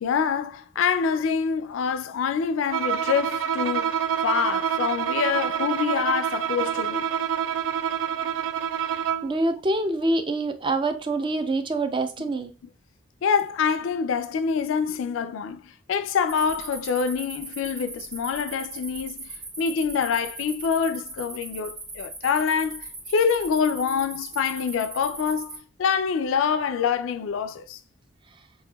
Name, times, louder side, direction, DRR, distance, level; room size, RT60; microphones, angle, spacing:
voice 1, 0.0-7.1 12.2-12.3 13.2-27.8, left 6 dB, 90° left, 0.4 m, -26 dB
Bowed string instrument, 2.7-9.4, right 9 dB, 80° right, 0.4 m, -27 dB
voice 2, 9.2-12.5, right 2 dB, 25° right, 0.5 m, -25 dB
sound 1, 16.3-25.6, right 3 dB, 55° right, 1.8 m, -39 dB
5.8 x 2.5 x 2.2 m
head